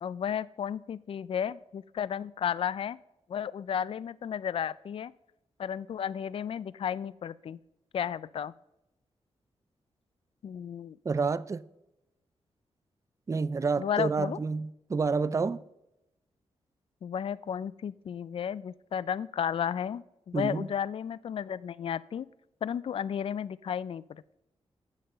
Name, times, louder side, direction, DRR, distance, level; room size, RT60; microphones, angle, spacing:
voice 1, 0.0-3.0 3.3-5.1 5.6-7.6 7.9-8.5 10.4-11.0 13.8-14.4 17.0-22.3 22.6-24.2, left 8 dB, 55° left, 0.4 m, -33 dB
voice 2, 11.0-11.6 13.3-15.6 20.3-20.7, right 4 dB, 30° right, 0.4 m, -29 dB
7.5 x 7.4 x 6.9 m
cardioid pair, 90°, 11 cm